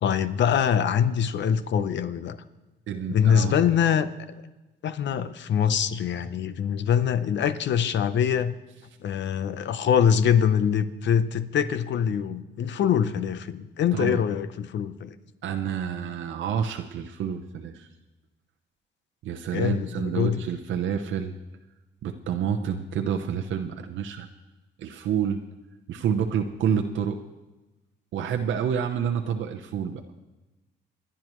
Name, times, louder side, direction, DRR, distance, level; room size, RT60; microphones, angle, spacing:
voice 1, 0.0-2.4 3.1-4.1 4.8-8.5 9.0-15.1 19.5-20.4, left 8 dB, 65° left, 12 dB, 0.8 m, -24 dB
voice 2, 2.9-3.6 13.9-14.2 15.4-17.9 19.2-21.3 22.0-24.3 24.8-25.4 25.9-27.2 28.1-30.0, right 8 dB, 75° right, 3 dB, 0.9 m, -28 dB
28.5 x 10.0 x 3.1 m, 1.1 s
cardioid pair, 90°, 20 cm